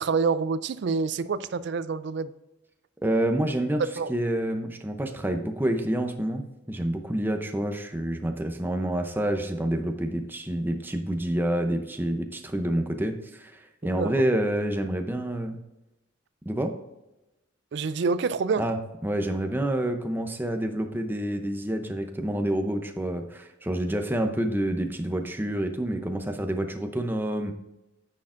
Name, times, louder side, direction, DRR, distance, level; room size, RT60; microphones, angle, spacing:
voice 1, 0.0-2.3 4.0-4.1 14.0-14.1 17.7-18.6, right 4 dB, 60° right, 0.4 m, -27 dB
voice 2, 3.0-3.8 4.1-13.5 13.8-15.6 16.4-16.7 18.6-18.8 19.0-27.5, right 1 dB, 10° right, 0.6 m, -28 dB
9.5 x 6.4 x 2.5 m
head